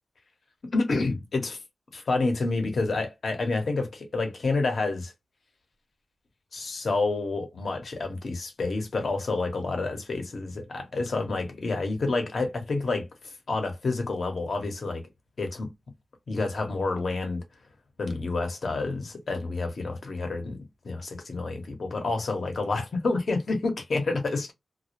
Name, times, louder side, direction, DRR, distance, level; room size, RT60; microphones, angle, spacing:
voice 1, 0.7-1.6 1.9-5.1 6.5-15.0 15.4-15.7 16.3-17.4 18.0-24.5, left 3 dB, 70° left, 0.8 m, -29 dB
2.2 x 2.0 x 2.8 m
cardioid pair, 50°, 0 cm